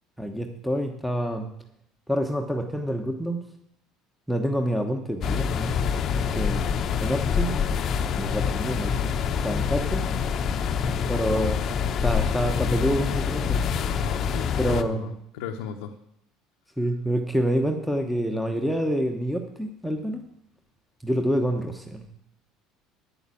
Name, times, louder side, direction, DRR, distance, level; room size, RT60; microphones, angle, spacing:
voice 1, 0.2-1.5 2.1-3.4 4.3-5.7 6.3-6.7 7.0-7.5 8.2-9.0 9.4-10.0 11.1-11.6 12.0-13.7 14.6-15.1 16.8-20.2 21.0-22.0, equal, ahead, 4 dB, 1.1 m, -27 dB
sound 1, 5.2-14.8, left 6 dB, 45° left, 0.8 m, -26 dB
voice 2, 13.9-16.0, left 8 dB, 85° left, 1 dB, 0.9 m, -36 dB
9.4 x 7.1 x 8.4 m, 0.76 s
supercardioid pair, 105°, 0 cm